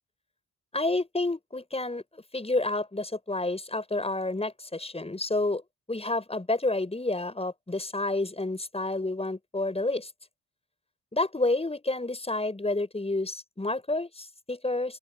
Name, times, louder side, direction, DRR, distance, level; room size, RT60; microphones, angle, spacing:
voice 1, 0.7-5.6 5.9-10.1 11.1-15.0, left 2 dB, 20° left, 6.3 m, -29 dB
open air
cardioid pair, 70°, 32 cm